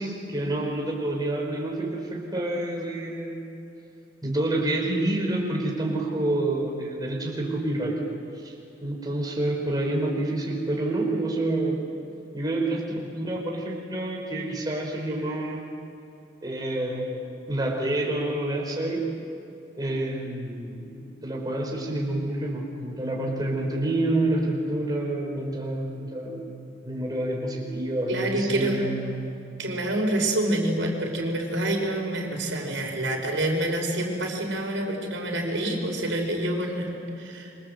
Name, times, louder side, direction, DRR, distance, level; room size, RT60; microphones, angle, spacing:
voice 1, 0.0-3.4 4.2-8.0 8.4-8.5 8.8-11.8 12.3-15.7 16.4-17.2 17.5-19.0 19.8-20.9 21.2-26.4 26.8-29.2, right 1 dB, 20° right, -1 dB, 4.9 m, -28 dB
voice 2, 28.1-28.8 29.6-37.7, right 1 dB, 80° right, 1 dB, 5.5 m, -27 dB
27.0 x 25.0 x 8.1 m, 2.7 s
head